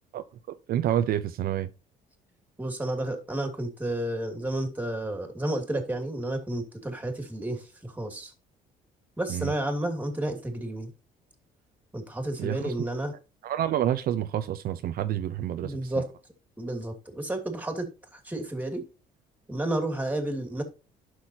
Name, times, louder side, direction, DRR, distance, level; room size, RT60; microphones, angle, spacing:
voice 1, 0.7-1.7 9.3-9.5 12.4-12.7 13.4-15.8, right 11 dB, 60° right, 0.7 m, -28 dB
voice 2, 2.6-8.3 9.2-10.9 11.9-13.1 15.6-16.1 16.6-17.9 18.1-18.8 19.5-20.6, right 1 dB, 10° right, 2.7 m, -31 dB
11.5 x 6.2 x 2.8 m
cardioid pair, 110°, 17 cm